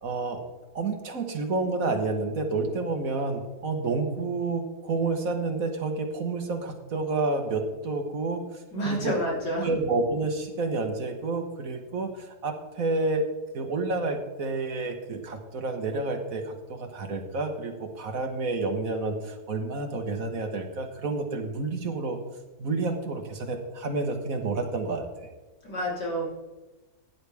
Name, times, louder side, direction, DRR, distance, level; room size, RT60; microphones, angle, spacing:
voice 1, 0.0-0.4 0.7-9.1 9.6-13.2 13.5-22.2 22.6-25.3, right 3 dB, 55° right, 5 dB, 1.7 m, -29 dB
voice 2, 8.7-9.7 25.6-26.3, equal, 75° left, -4 dB, 4.4 m, -29 dB
16.0 x 10.5 x 3.5 m, 1.1 s
omnidirectional pair, 1.8 m